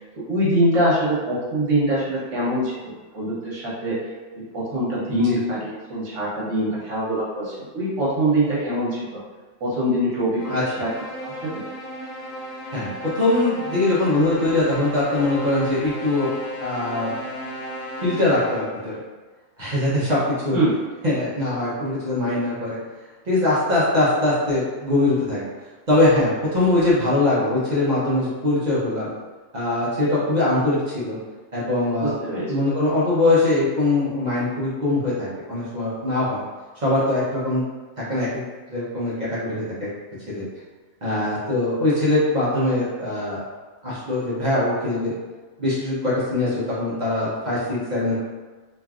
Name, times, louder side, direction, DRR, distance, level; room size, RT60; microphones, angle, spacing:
voice 1, 0.3-4.0 4.5-9.2 9.6-10.9 11.2-11.6 20.5-20.7 32.0-32.4, right 1 dB, 75° right, -7 dB, 1.3 m, -23 dB
voice 2, 5.1-5.4 10.5-10.8 12.7-12.9 13.1-16.3 16.6-17.1 18.0-18.9 19.6-20.2 20.4-20.6 21.0-22.8 23.2-25.5 25.9-29.1 29.5-31.2 31.5-32.1 32.5-36.4 36.8-37.6 38.0-38.4 38.7-39.9 40.3-40.5 41.0-43.4 43.8-45.1 45.6-48.2, left 2 dB, 40° right, -9 dB, 0.8 m, -22 dB
sound 1, 10.4-18.9, equal, 85° left, 1.0 m, -34 dB
3.0 x 2.5 x 2.4 m, 1.3 s
omnidirectional pair, 1.3 m